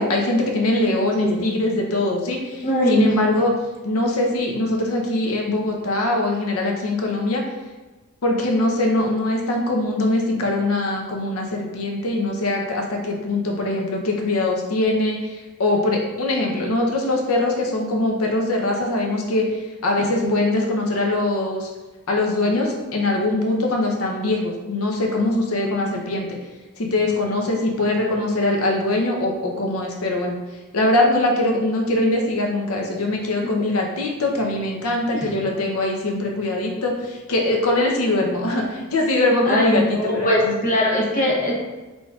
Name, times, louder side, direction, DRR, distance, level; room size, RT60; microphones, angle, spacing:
voice 1, 0.0-3.5 3.8-7.4 8.2-21.7 22.1-26.3 26.8-30.4 30.7-40.6, left 2 dB, 70° left, 1 dB, 0.7 m, -22 dB
voice 2, 2.6-3.2 20.0-20.3 35.1-35.3 39.4-41.6, left 1 dB, 35° left, -3 dB, 0.8 m, -20 dB
3.8 x 3.5 x 2.3 m, 1.2 s
head